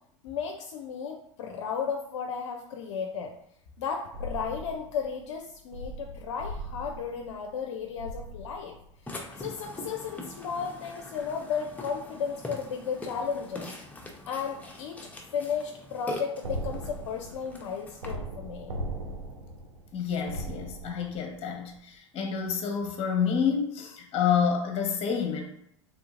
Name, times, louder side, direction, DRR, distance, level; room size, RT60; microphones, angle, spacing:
voice 1, 0.2-3.3 3.8-8.8 9.1-13.7 14.3-18.7, left 6 dB, 65° left, 2 dB, 0.5 m, -34 dB
sound 1, 4.1-9.2 16.4-21.4 21.6-21.7, right 1 dB, 75° right, 0.6 m, -39 dB
Burping eructation, 9.1-18.1, left 1 dB, 10° left, 0.7 m, -43 dB
voice 2, 19.9-25.4, left 7 dB, 40° left, 2 dB, 0.9 m, -28 dB
3.7 x 3.4 x 2.4 m, 0.73 s
figure-of-eight pair, 80°, 16 cm